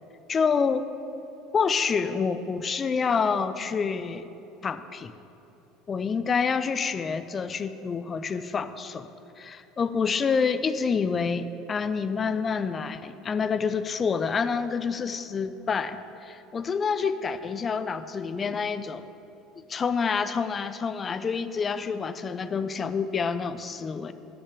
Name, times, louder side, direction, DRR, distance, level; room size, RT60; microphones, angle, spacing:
voice 1, 0.3-0.9 1.5-4.3 4.6-5.1 5.9-9.1 9.4-19.0 19.7-24.1, left 5 dB, 30° left, 11 dB, 0.5 m, -27 dB
8.6 x 6.5 x 7.4 m, 3.0 s
hypercardioid pair, 70°, 0 cm